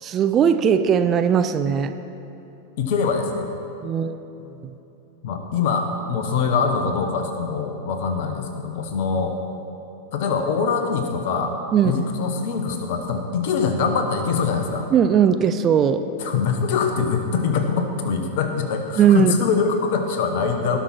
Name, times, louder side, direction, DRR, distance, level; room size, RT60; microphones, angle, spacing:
voice 1, 0.0-1.9 3.8-4.2 11.7-11.9 14.9-16.0 19.0-19.3, right 8 dB, 30° right, 10 dB, 0.4 m, -18 dB
voice 2, 2.8-3.5 5.2-9.3 10.1-11.5 11.8-14.9 16.2-20.8, left 5 dB, 50° left, 5 dB, 1.2 m, -23 dB
18.0 x 6.0 x 4.4 m, 2.9 s
figure-of-eight pair, 90°, 0 cm